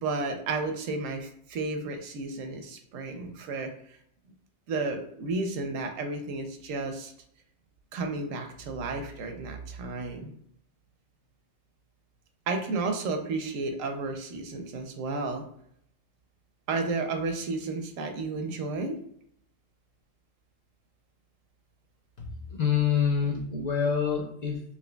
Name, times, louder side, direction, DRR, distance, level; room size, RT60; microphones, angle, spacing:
voice 1, 0.0-3.7 4.7-7.1 7.9-10.3 12.5-15.4 16.7-19.0, right 3 dB, 80° right, 5 dB, 1.0 m, -32 dB
voice 2, 22.2-24.6, left 7 dB, 55° left, 0 dB, 0.4 m, -27 dB
5.1 x 2.9 x 2.2 m, 0.68 s
omnidirectional pair, 1.4 m